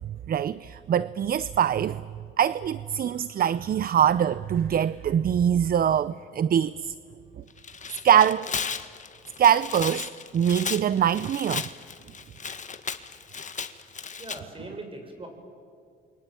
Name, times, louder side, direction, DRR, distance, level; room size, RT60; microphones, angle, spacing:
voice 1, 0.3-2.1 2.4-6.9 8.0-8.5 9.4-11.7, right 9 dB, 50° right, 0.6 m, -23 dB
Tearing, 7.5-14.4, left 6 dB, 40° left, 1.6 m, -35 dB
voice 2, 14.2-15.3, right 2 dB, 25° right, 6.7 m, -41 dB
29.0 x 23.0 x 8.9 m
cardioid pair, 90°, 20 cm